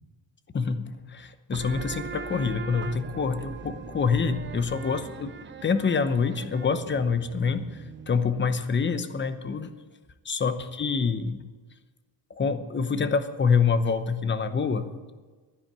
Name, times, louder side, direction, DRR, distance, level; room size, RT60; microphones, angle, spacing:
voice 1, 0.5-5.3 5.6-9.7 10.2-11.4 12.3-15.1, left 5 dB, 25° left, 11 dB, 0.8 m, -26 dB
sound 1, 1.5-8.8, right 7 dB, 25° right, 0.5 m, -40 dB
12.0 x 10.0 x 7.4 m, 1.4 s
cardioid pair, 140°, 47 cm